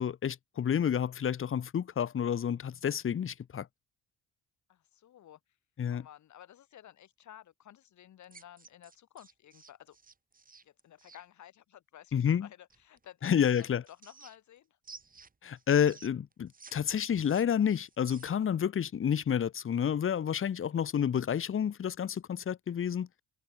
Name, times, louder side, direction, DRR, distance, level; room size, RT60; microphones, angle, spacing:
voice 1, 0.0-3.7 5.8-6.0 12.1-12.5 13.2-13.8 15.4-23.2, left 8 dB, 45° left, 1.2 m, -29 dB
voice 2, 4.7-5.4 5.9-10.0 10.6-14.8, left 11 dB, 70° left, 4.7 m, -54 dB
sound 1, 8.2-11.2 12.7-14.6 14.8-16.7 17.0-18.5, right 4 dB, 30° right, 3.2 m, -54 dB
cardioid pair, 90°, 30 cm